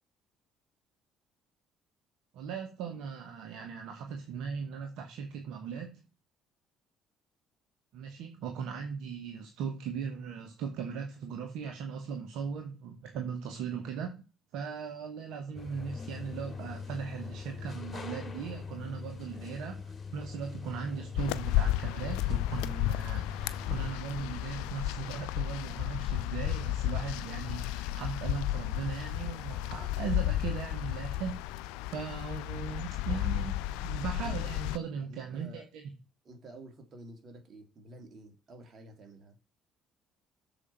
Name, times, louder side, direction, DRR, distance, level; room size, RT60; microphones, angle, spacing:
voice 1, 2.3-6.0 7.9-14.2 14.5-31.4 31.9-33.6 33.8-35.8, right 6 dB, 70° right, 1.1 m, -38 dB
sound 1, 15.5-23.9, left 5 dB, 35° left, 1.9 m, -42 dB
sound 2, 21.2-34.8, left 14 dB, 80° left, 0.4 m, -33 dB
voice 2, 34.2-34.5 35.0-35.7 36.2-39.4, right 2 dB, 50° right, 2.9 m, -50 dB
7.0 x 5.0 x 5.8 m
hypercardioid pair, 60°, 0 cm